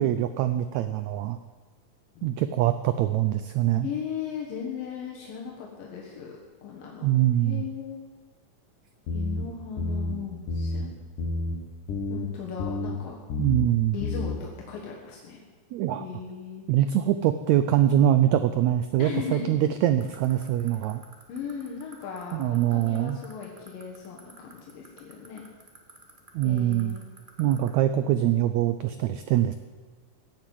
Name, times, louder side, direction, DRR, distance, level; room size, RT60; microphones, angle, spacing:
voice 1, 0.0-1.4 2.2-3.9 7.0-7.6 13.4-14.0 15.7-16.1 16.7-21.0 22.3-23.2 26.3-26.9 27.4-29.5, right 12 dB, 85° right, 11 dB, 1.6 m, -23 dB
voice 2, 3.8-6.3 6.6-7.1 7.4-8.0 9.1-10.9 12.1-13.2 13.9-15.4 16.0-16.7 19.0-19.7 21.3-25.4 26.4-27.0, left 7 dB, 90° left, -2 dB, 3.3 m, -37 dB
sound 1, 9.1-9.4 9.8-10.1 10.5-10.8 11.2-11.5 11.9-12.3 12.6-13.0 13.3-13.7 14.0-14.4, left 2 dB, 70° left, 3.0 m, -29 dB
sound 2, 20.0-27.7, right 4 dB, 20° right, 1.4 m, -48 dB
16.0 x 7.5 x 9.3 m, 1.4 s
omnidirectional pair, 3.9 m